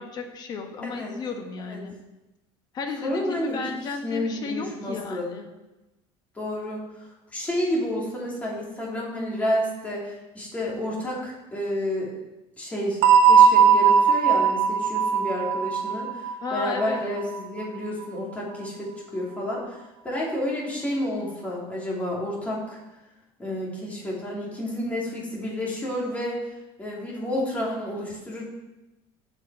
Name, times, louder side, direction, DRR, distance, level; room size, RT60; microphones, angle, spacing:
voice 1, 0.0-1.9 2.7-5.5 16.4-17.1, left 4 dB, 30° left, 4 dB, 1.3 m, -34 dB
voice 2, 0.8-1.1 1.7-1.8 3.0-3.6 4.0-5.3 6.3-6.9 7.3-12.1 12.6-13.0 13.3-19.8 20.0-22.8 23.4-26.4 26.8-28.4, left 1 dB, 10° left, -4 dB, 2.8 m, -30 dB
sound 1, 13.0-17.7, right 7 dB, 80° right, 0.9 m, -19 dB
15.0 x 5.3 x 4.8 m, 1.0 s
cardioid pair, 165°, 13 cm